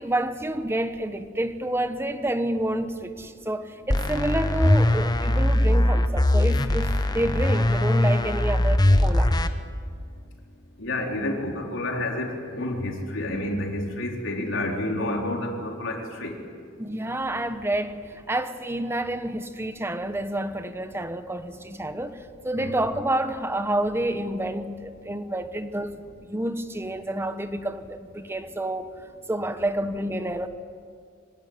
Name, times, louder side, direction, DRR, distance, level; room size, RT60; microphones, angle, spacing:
voice 1, 0.0-9.3 16.8-25.9 26.3-28.9 29.3-30.5, right 1 dB, 15° right, 1.1 m, -29 dB
sound 1, 3.9-9.5, left 1 dB, 20° left, 1.0 m, -21 dB
voice 2, 10.8-16.4 22.6-22.7, left 1 dB, 80° left, 4.2 m, -29 dB
24.5 x 16.5 x 9.8 m
head